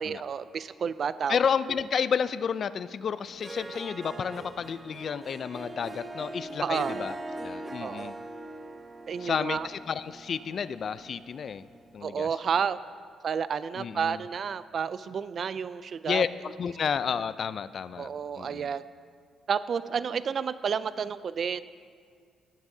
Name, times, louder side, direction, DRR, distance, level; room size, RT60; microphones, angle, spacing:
voice 1, 0.0-1.4 6.6-7.0 7.8-8.1 9.1-9.7 12.0-12.8 13.2-16.3 18.0-18.8 19.5-21.6, right 7 dB, 50° right, 15 dB, 0.3 m, -30 dB
voice 2, 1.3-7.2 7.4-8.1 9.2-11.7 11.9-12.3 13.8-14.2 16.0-18.1 18.4-18.7, left 7 dB, 55° left, 15 dB, 0.4 m, -31 dB
Harp, 3.3-11.9, right 2 dB, 25° right, 0.7 m, -42 dB
17.0 x 10.5 x 2.7 m, 2.1 s
cardioid pair, 90°, 0 cm